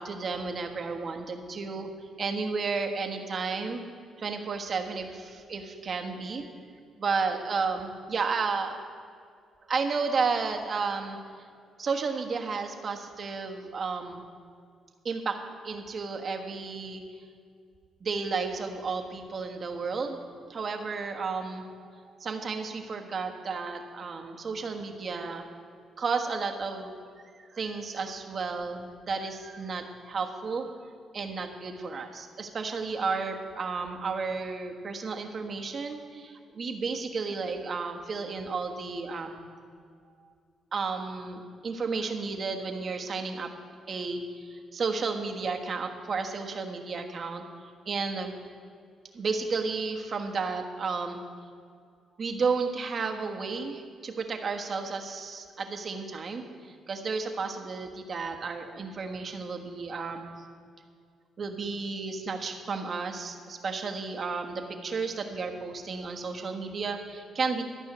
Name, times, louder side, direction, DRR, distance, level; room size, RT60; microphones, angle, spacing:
voice 1, 0.0-1.9 2.2-3.8 4.2-6.4 7.0-8.8 9.7-11.2 11.8-14.3 15.0-15.4 15.6-17.0 18.0-20.2 20.5-21.7 22.2-25.4 26.0-26.9 27.5-30.8 31.1-39.4 40.7-43.5 43.9-47.4 47.8-48.4 49.1-51.2 52.2-60.3 61.4-67.6, right 4 dB, 45° right, 4 dB, 1.3 m, -32 dB
13.0 x 5.6 x 9.3 m, 2.2 s
cardioid pair, 90°, 0 cm